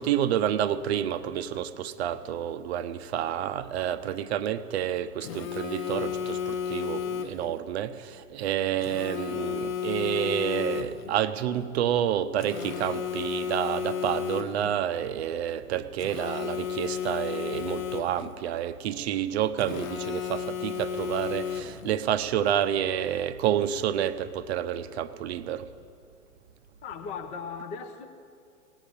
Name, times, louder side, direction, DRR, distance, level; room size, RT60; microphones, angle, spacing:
voice 1, 0.0-25.7, right 10 dB, 45° right, 12 dB, 0.7 m, -29 dB
Telephone, 5.2-7.6 8.8-11.2 12.4-14.8 16.0-18.4 19.6-22.0, left 8 dB, 65° left, 0.8 m, -33 dB
voice 2, 26.8-28.1, left 6 dB, 15° left, 6 dB, 0.6 m, -37 dB
18.0 x 8.2 x 8.6 m, 2.4 s
hypercardioid pair, 120°, 45 cm